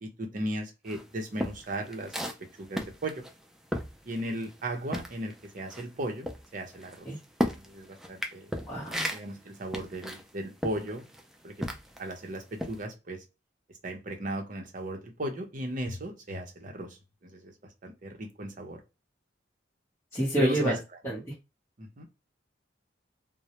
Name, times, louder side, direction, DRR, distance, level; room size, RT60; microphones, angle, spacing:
voice 1, 0.0-3.2 4.0-7.1 7.6-8.5 9.1-11.1 11.4-11.7 12.0-13.2 13.8-17.5 17.8-18.8 20.4-21.1 21.8-22.1, right 1 dB, 45° right, 0.7 m, -36 dB
sound 1, 0.9-4.6 4.9-12.1 12.6-12.8, equal, ahead, 0.3 m, -35 dB
voice 2, 8.7-9.1 20.1-20.7 21.0-21.2, equal, 15° left, 0.8 m, -28 dB
2.2 x 2.0 x 2.8 m
head